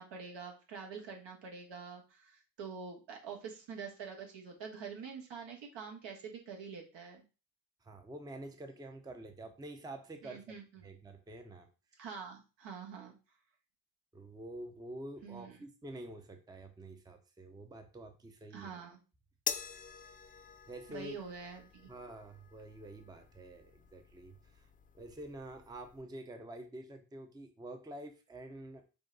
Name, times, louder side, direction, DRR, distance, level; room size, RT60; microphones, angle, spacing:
voice 1, 0.0-7.2 10.2-10.8 12.0-13.1 15.2-15.6 18.5-19.0 20.9-21.9, right 6 dB, 65° right, 1 dB, 1.4 m, -46 dB
voice 2, 7.8-10.4 10.8-11.7 14.1-18.7 20.7-21.2 21.9-24.7 24.9-28.8, right 1 dB, 10° right, 6 dB, 0.7 m, -48 dB
sound 1, 19.5-26.0, left 7 dB, 20° left, 0.3 m, -46 dB
5.2 x 2.2 x 3.8 m, 0.33 s
supercardioid pair, 70°, 46 cm